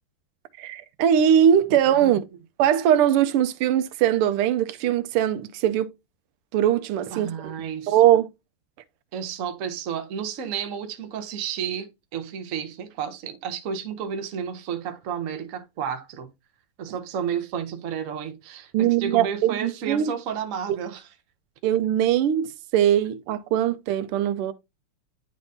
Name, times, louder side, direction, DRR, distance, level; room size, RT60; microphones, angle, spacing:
voice 1, 0.5-2.2 2.6-5.9 6.5-7.5 7.9-8.3 16.9-17.0 18.7-20.1 20.7-20.8 21.6-24.5, right 10 dB, 85° right, 1.5 m, -21 dB
voice 2, 7.1-7.9 9.1-16.3 16.8-21.0, right 7 dB, 55° right, 0.9 m, -31 dB
10.0 x 3.5 x 2.6 m
omnidirectional pair, 2.4 m